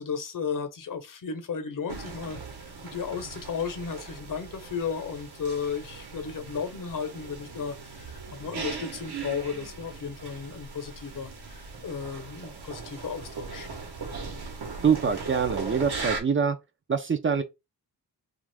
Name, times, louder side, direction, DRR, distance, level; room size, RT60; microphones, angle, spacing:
voice 1, 0.0-13.7, left 6 dB, 55° left, 0.9 m, -34 dB
sound 1, 1.9-16.2, right 4 dB, 75° right, 1.0 m, -39 dB
voice 2, 14.8-16.6 16.9-17.4, right 6 dB, 30° right, 0.5 m, -24 dB
2.5 x 2.5 x 3.3 m
cardioid pair, 65°, 39 cm